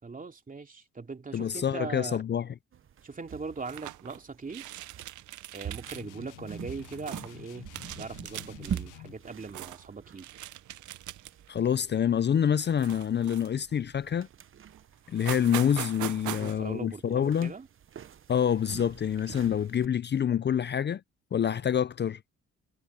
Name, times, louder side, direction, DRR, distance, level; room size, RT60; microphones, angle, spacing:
voice 1, 0.0-2.2 3.0-4.6 5.5-7.7 8.0-10.3 16.2-17.7, right 4 dB, 25° right, 2.7 m, -40 dB
voice 2, 1.3-2.5 11.5-14.3 15.1-17.5 18.3-21.0 21.3-22.2, left 8 dB, 35° left, 0.5 m, -27 dB
sound 1, 2.7-19.9, right 8 dB, 45° right, 0.9 m, -45 dB
sound 2, 3.6-4.2 4.5-6.0 6.4-7.3 7.7-8.8 9.2-9.9 10.2-11.5 11.9-12.1 12.8-13.7 14.3-14.4 14.7-14.8 15.1-16.5, right 15 dB, 75° right, 0.7 m, -41 dB
sound 3, 5.9-9.3, left 16 dB, 85° left, 0.8 m, -49 dB
cardioid pair, 90°, 30 cm